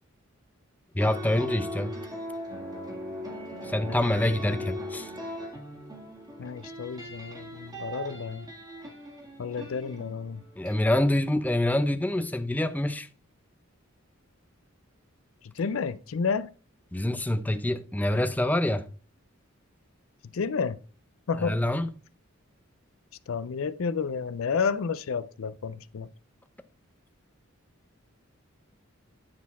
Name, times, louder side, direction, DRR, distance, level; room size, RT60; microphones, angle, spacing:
voice 1, 0.9-2.0 3.6-5.1 10.6-13.1 16.9-18.9 21.4-21.9, left 1 dB, 10° left, 0.5 m, -26 dB
sound 1, 1.0-10.8, equal, 20° right, 1.7 m, -39 dB
voice 2, 3.9-4.6 6.4-8.5 9.4-10.4 15.5-16.5 20.2-20.8 21.3-21.6 23.3-26.1, left 5 dB, 80° left, 0.4 m, -31 dB
9.5 x 4.2 x 4.2 m
head